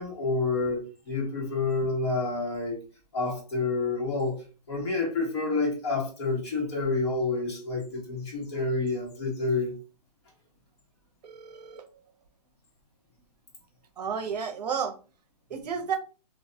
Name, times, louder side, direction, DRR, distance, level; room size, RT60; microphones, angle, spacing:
voice 1, 0.0-2.8 3.1-4.4 4.7-9.7, left 3 dB, 40° left, 1.2 m, -28 dB
voice 2, 11.2-11.9 14.0-14.9 15.5-16.0, right 6 dB, 70° right, 0.6 m, -32 dB
2.6 x 2.2 x 2.6 m
hypercardioid pair, 175°, 21 cm